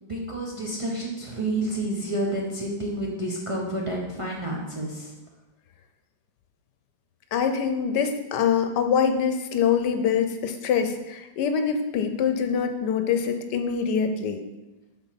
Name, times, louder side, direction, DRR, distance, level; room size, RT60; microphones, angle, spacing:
voice 1, 0.0-5.1, right 1 dB, 25° right, -3 dB, 0.8 m, -29 dB
voice 2, 7.3-14.4, left 7 dB, 75° left, 6 dB, 1.3 m, -24 dB
7.1 x 4.1 x 5.8 m, 1.0 s
omnidirectional pair, 1.8 m